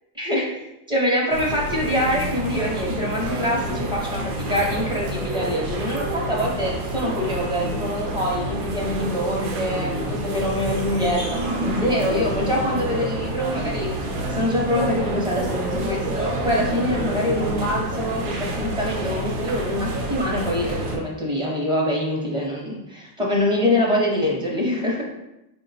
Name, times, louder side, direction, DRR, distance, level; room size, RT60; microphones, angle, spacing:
voice 1, 0.2-0.5 0.9-25.0, left 1 dB, 10° right, -3 dB, 0.7 m, -25 dB
sound 1, 1.3-21.0, right 1 dB, 85° right, 0.9 m, -28 dB
4.5 x 2.2 x 3.9 m, 0.90 s
cardioid pair, 155°, 45 cm